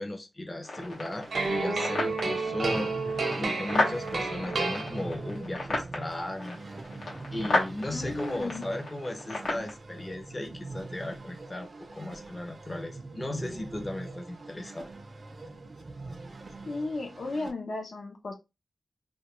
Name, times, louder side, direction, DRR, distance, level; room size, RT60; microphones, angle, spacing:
voice 1, 0.0-6.6 7.3-14.9, left 1 dB, 25° left, 0.5 m, -36 dB
sound 1, 0.6-9.7, left 2 dB, 90° left, 0.9 m, -34 dB
sound 2, 0.8-17.5, right 3 dB, 45° right, 0.3 m, -43 dB
sound 3, 1.3-5.4, right 3 dB, 80° right, 0.7 m, -31 dB
voice 2, 7.9-8.6 16.7-18.3, left 2 dB, 75° left, 0.5 m, -35 dB
2.2 x 2.2 x 2.9 m
wide cardioid pair, 95°, 0 cm